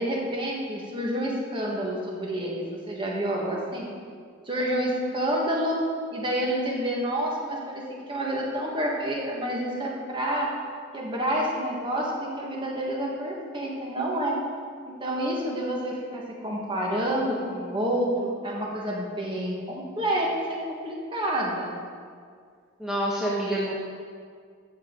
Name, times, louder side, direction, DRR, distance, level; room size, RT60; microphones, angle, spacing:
voice 1, 0.0-3.9 4.4-5.8 6.1-10.5 10.9-14.4 14.9-21.8, right 1 dB, 25° right, -3 dB, 1.5 m, -28 dB
voice 2, 22.8-23.8, right 1 dB, 5° right, -7 dB, 1.2 m, -27 dB
14.0 x 7.3 x 3.9 m, 2.1 s
head